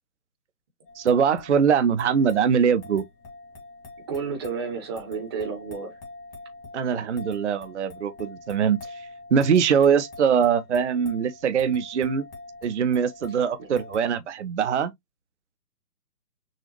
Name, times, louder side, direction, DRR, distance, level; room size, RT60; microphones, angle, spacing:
sound 1, 0.9-14.2, left 3 dB, 35° left, 2.1 m, -44 dB
voice 1, 1.0-3.0 6.7-9.0 9.3-12.3 12.6-14.9, right 7 dB, 50° right, 0.5 m, -22 dB
voice 2, 4.1-5.9 13.6-13.7, right 5 dB, 15° right, 0.7 m, -31 dB
6.3 x 2.3 x 3.0 m
figure-of-eight pair, 135°, 48 cm